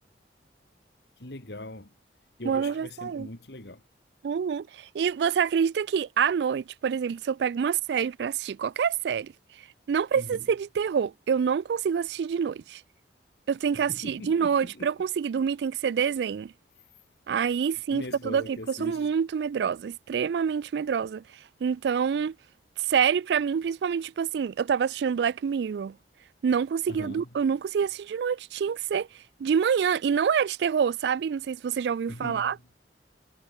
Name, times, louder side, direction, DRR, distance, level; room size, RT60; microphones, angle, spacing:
voice 1, 1.2-1.9 2.4-3.8 10.1-10.5 13.7-14.9 17.9-19.1 26.9-27.3 32.1-32.6, left 1 dB, 65° left, 2.5 m, -41 dB
voice 2, 2.4-3.3 4.2-9.3 9.9-12.8 13.5-16.5 17.3-21.2 21.6-22.3 22.9-25.9 26.4-29.1 29.4-32.6, right 7 dB, 65° right, 0.3 m, -27 dB
head